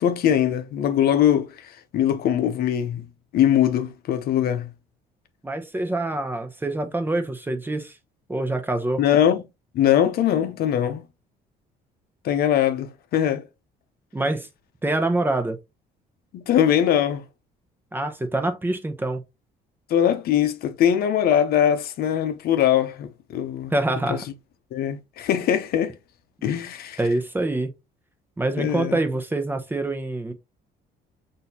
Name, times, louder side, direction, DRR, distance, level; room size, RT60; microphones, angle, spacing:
voice 1, 0.0-3.0 3.3-4.7 9.0-9.4 9.7-11.0 12.2-13.4 16.3-17.2 19.9-23.7 24.7-25.9 26.4-27.0 28.6-29.0, left 10 dB, 65° left, 0.7 m, -21 dB
voice 2, 5.4-8.0 8.3-9.0 14.1-14.5 14.8-15.6 17.9-19.2 23.7-24.2 27.0-27.7 28.4-30.3, right 2 dB, 10° right, 0.8 m, -25 dB
6.2 x 2.7 x 2.8 m
cardioid pair, 110°, 17 cm